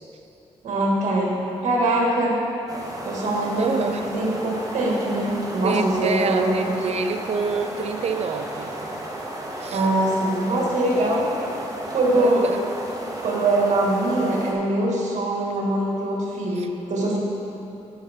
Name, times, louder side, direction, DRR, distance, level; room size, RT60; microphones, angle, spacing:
voice 1, 0.6-2.4 3.0-6.7 9.7-11.3 11.9-12.6 13.2-17.2, right 1 dB, 70° right, -3 dB, 2.0 m, -23 dB
sound 1, 2.7-14.5, right 1 dB, 30° right, 1.3 m, -34 dB
voice 2, 3.6-4.1 5.6-8.7 9.6-9.9 12.1-12.6 16.5-16.7, right 5 dB, 55° right, 7 dB, 0.6 m, -27 dB
15.0 x 5.4 x 3.7 m, 3.0 s
cardioid pair, 85°, 13 cm